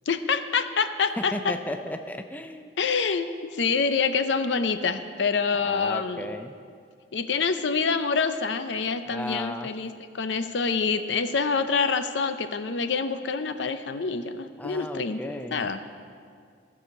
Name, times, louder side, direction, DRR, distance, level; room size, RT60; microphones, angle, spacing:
voice 1, 0.1-1.5 2.8-6.3 7.1-9.9 10.1-15.8, left 5 dB, 75° left, 10 dB, 0.6 m, -26 dB
voice 2, 1.2-2.8 5.5-6.5 9.1-9.7 14.6-15.7, left 1 dB, 10° left, 6 dB, 0.4 m, -35 dB
14.5 x 5.0 x 7.1 m, 2.2 s
head